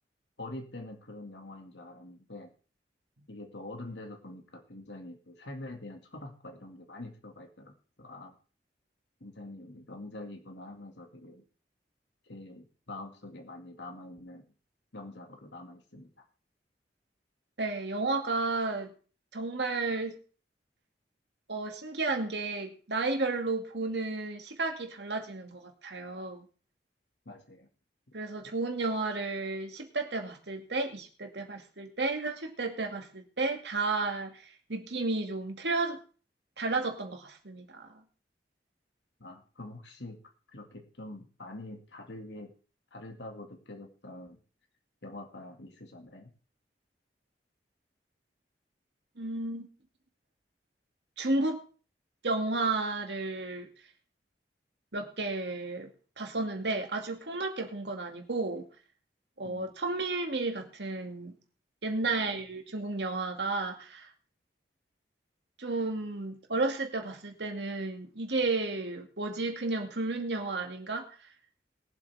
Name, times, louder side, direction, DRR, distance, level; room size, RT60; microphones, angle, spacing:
voice 1, 0.4-2.5 3.3-7.7 8.0-8.4 9.2-11.4 12.2-14.5 14.9-16.1 27.3-27.7 39.2-40.2 40.5-42.5 42.9-44.4 45.0-46.3 59.4-59.7 62.0-62.4, left 2 dB, 85° left, 3 dB, 2.2 m, -45 dB
voice 2, 17.6-18.9 19.3-20.2 21.5-26.4 28.1-36.0 36.6-37.9 49.2-49.7 51.2-51.6 52.2-53.7 54.9-55.9 56.2-58.7 59.4-61.3 61.8-64.1 65.6-71.1, right 3 dB, 75° right, 4 dB, 2.3 m, -32 dB
21.5 x 7.9 x 3.5 m, 0.37 s
head